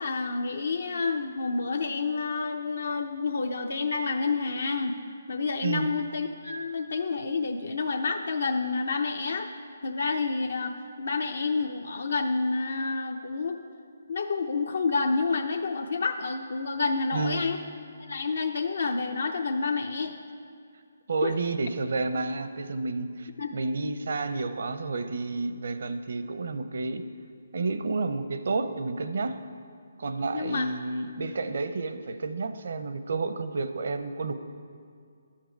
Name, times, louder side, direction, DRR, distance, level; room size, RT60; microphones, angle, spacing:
voice 1, 0.0-5.0 5.3-9.5 9.8-13.6 14.1-17.6 18.0-20.2 21.2-21.3 23.4-23.5 30.3-30.7, left 4 dB, 75° left, 5 dB, 0.6 m, -29 dB
voice 2, 17.1-17.4 21.1-27.0 27.5-29.4 30.0-34.3, right 3 dB, 65° right, 10 dB, 0.6 m, -30 dB
11.5 x 7.5 x 4.5 m, 2.3 s
hypercardioid pair, 150°, 0 cm